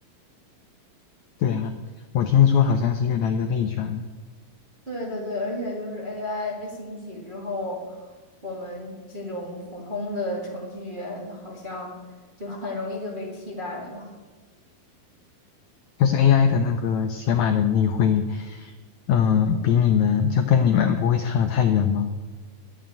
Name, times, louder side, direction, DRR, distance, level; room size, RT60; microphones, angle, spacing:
voice 1, 1.4-1.7 2.1-4.1 16.0-18.7 19.1-22.1, left 8 dB, 85° left, 6 dB, 1.6 m, -21 dB
voice 2, 4.9-8.1 8.4-12.0 12.4-14.1, left 2 dB, 20° right, -3 dB, 1.4 m, -33 dB
11.0 x 7.1 x 8.9 m, 1.3 s
omnidirectional pair, 4.2 m